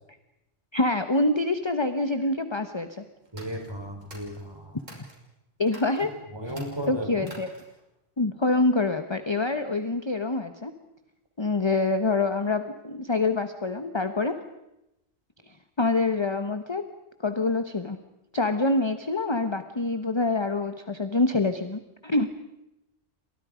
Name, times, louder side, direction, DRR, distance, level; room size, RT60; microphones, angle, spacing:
voice 1, 0.7-3.0 4.9-5.1 5.6-6.1 6.4-6.5 6.9-7.5 8.2-10.7 11.4-14.4 15.5-16.9 17.2-18.0 18.3-22.3, left 2 dB, 25° left, 9 dB, 1.1 m, -26 dB
sound 1, 3.2-5.2 5.6-6.0 6.4-7.8, right 1 dB, 80° right, 6.4 m, -49 dB
voice 2, 3.3-4.7 6.0-7.3, equal, 20° right, 3 dB, 4.4 m, -35 dB
29.5 x 26.0 x 5.1 m, 0.89 s
omnidirectional pair, 1.3 m